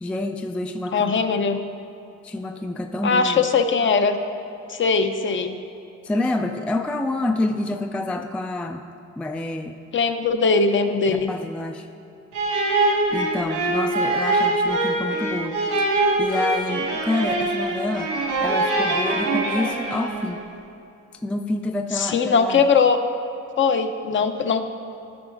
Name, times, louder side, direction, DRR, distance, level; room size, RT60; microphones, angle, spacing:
voice 1, 0.0-1.2 2.2-3.5 6.0-8.8 9.2-9.8 11.1-11.9 13.1-18.1 18.4-20.4 21.2-22.7, left 2 dB, 5° left, 5 dB, 0.3 m, -28 dB
voice 2, 0.9-1.6 3.0-4.2 4.7-5.5 9.9-11.3 21.9-23.0 23.6-24.6, left 5 dB, 40° left, 8 dB, 0.6 m, -20 dB
sound 1, 12.3-20.4, right 2 dB, 85° right, 1.9 m, -23 dB
13.0 x 4.9 x 3.9 m, 2.7 s
cardioid pair, 90°, 30 cm